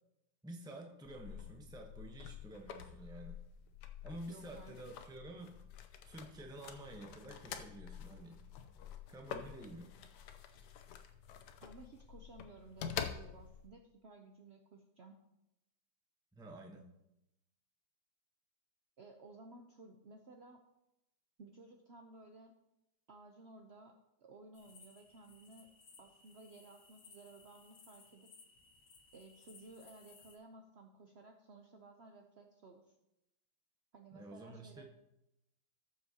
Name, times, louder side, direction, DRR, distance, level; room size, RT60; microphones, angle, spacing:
voice 1, 0.4-3.4 4.0-5.6 6.0-8.4 9.1-9.9 10.5-10.7 16.3-16.9 34.1-34.9, right 1 dB, 5° right, 2 dB, 0.5 m, -50 dB
sound 1, 1.0-13.7, left 8 dB, 70° left, 1.2 m, -48 dB
voice 2, 4.3-4.7 11.6-15.2 19.0-20.7 21.4-22.5 23.1-25.7 26.0-28.3 29.1-32.9 33.9-34.9, right 3 dB, 85° right, 3 dB, 0.5 m, -56 dB
sound 2, 24.5-30.4, left 4 dB, 85° left, 2.2 m, -62 dB
17.5 x 7.2 x 2.8 m, 0.88 s
omnidirectional pair, 2.1 m